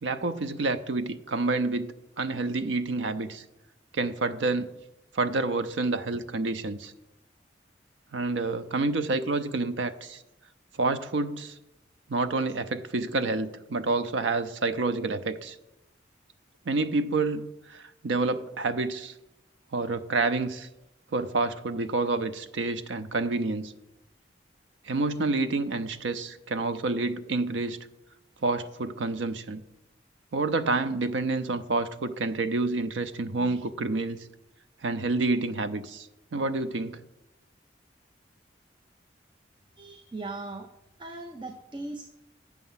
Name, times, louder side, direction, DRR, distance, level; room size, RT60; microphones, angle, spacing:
voice 1, 0.0-3.4 3.9-4.7 5.1-6.9 8.1-10.2 10.8-11.6 12.1-15.6 16.7-19.1 19.7-20.7 21.1-23.7 24.9-27.8 28.4-29.6 30.3-34.2 34.8-37.0, right 3 dB, 85° right, 11 dB, 0.6 m, -28 dB
voice 2, 39.8-40.7 41.0-42.0, right 2 dB, 25° right, 5 dB, 0.5 m, -38 dB
8.2 x 6.7 x 5.6 m, 0.93 s
head